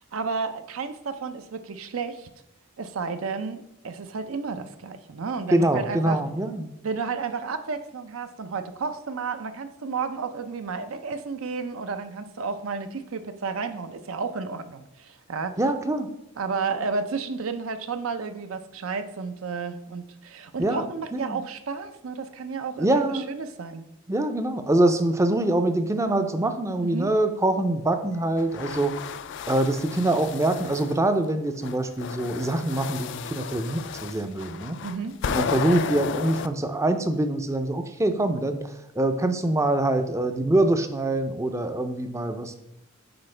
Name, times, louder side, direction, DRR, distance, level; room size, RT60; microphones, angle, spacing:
voice 1, 0.1-2.3 2.8-6.2 6.8-15.6 16.4-23.9 26.8-27.1 34.8-35.2, right 5 dB, 75° right, 10 dB, 0.5 m, -32 dB
voice 2, 5.5-6.7 15.6-16.1 20.6-20.8 21.1-21.4 22.8-23.3 24.1-29.0 29.5-34.8 35.3-42.6, right 1 dB, 15° right, 8 dB, 0.5 m, -24 dB
sound 1, 28.4-31.0 31.6-36.5, left 6 dB, 60° left, 0.3 m, -33 dB
7.9 x 4.8 x 3.3 m, 0.90 s
head